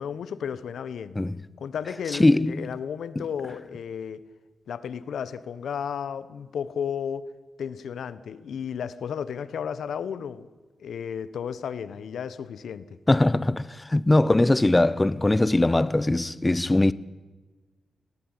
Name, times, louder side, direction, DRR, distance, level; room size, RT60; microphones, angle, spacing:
voice 1, 0.0-1.2 1.6-4.2 4.7-7.3 7.6-10.5 10.8-13.0, left 7 dB, 85° left, 1.2 m, -33 dB
voice 2, 2.2-2.7 3.2-3.3 13.1-16.9, left 2 dB, 15° left, 0.8 m, -21 dB
20.0 x 17.5 x 9.9 m
wide cardioid pair, 110°, 0 cm